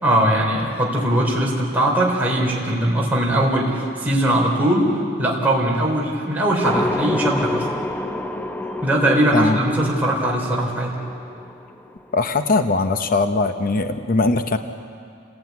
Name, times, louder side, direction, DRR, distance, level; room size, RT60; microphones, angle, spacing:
voice 1, 0.0-7.7 8.8-11.0, right 1 dB, 10° right, -4 dB, 3.8 m, -20 dB
sound 1, 6.6-12.5, left 2 dB, 10° left, 0.7 m, -28 dB
voice 2, 12.1-14.6, left 3 dB, 45° left, 8 dB, 0.8 m, -20 dB
27.5 x 17.5 x 9.5 m, 2.4 s
head